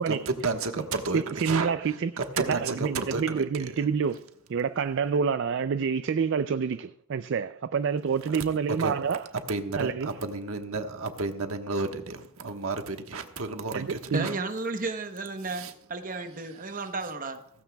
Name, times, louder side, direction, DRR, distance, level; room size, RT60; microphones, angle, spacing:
voice 1, 0.4-1.7 2.2-3.9 8.2-8.4 8.8-9.0 9.5-14.3 15.5-15.7, right 3 dB, 75° right, 1.3 m, -32 dB
voice 2, 1.1-2.1 2.4-4.2 4.5-9.3 9.8-10.1 13.7-14.3, right 6 dB, 60° right, 0.4 m, -28 dB
voice 3, 14.1-17.4, right 3 dB, 40° right, 1.0 m, -33 dB
17.0 x 15.5 x 2.3 m
head